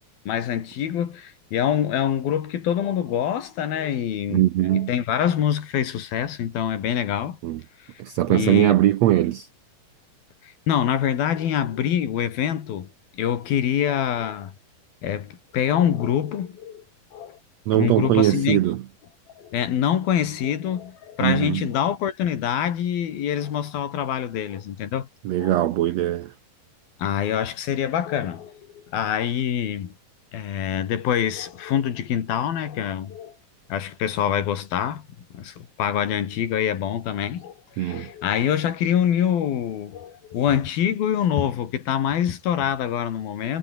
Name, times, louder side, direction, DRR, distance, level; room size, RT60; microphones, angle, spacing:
voice 1, 0.3-4.4 4.7-7.4 8.3-8.8 10.4-12.9 13.1-14.5 15.0-16.8 17.1-17.4 17.7-18.6 19.4-25.1 25.4-25.6 27.0-29.9 30.3-33.3 33.7-43.6, left 9 dB, 80° left, 4.2 m, -25 dB
voice 2, 4.3-4.9 7.4-7.6 8.0-9.5 17.7-18.8 21.2-21.7 25.2-26.3 37.8-38.1, right 14 dB, 85° right, 1.5 m, -21 dB
omnidirectional pair, 4.2 m